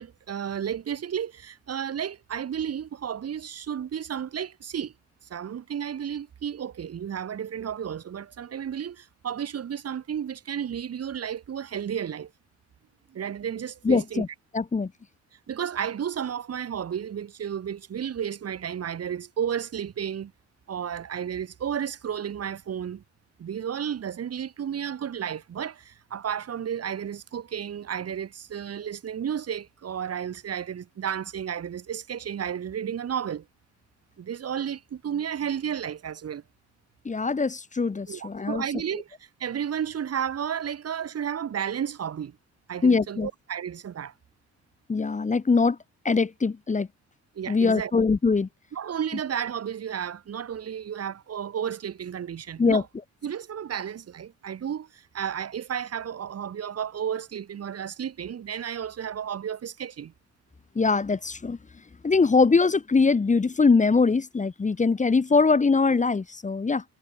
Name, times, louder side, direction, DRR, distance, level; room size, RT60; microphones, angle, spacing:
voice 1, 0.0-4.9 5.2-12.3 13.1-14.2 15.5-20.3 20.7-23.0 23.4-33.5 34.2-36.4 38.1-42.4 42.7-44.1 47.3-47.9 48.7-52.9 53.2-60.1, right 8 dB, 55° right, 2.9 m, -32 dB
voice 2, 13.8-14.3 14.5-14.9 37.0-38.6 42.8-43.3 44.9-45.8 46.0-46.9 47.5-48.5 52.6-52.8 60.7-61.6 62.0-66.8, left 4 dB, 25° left, 1.5 m, -22 dB
cardioid pair, 90°, 30 cm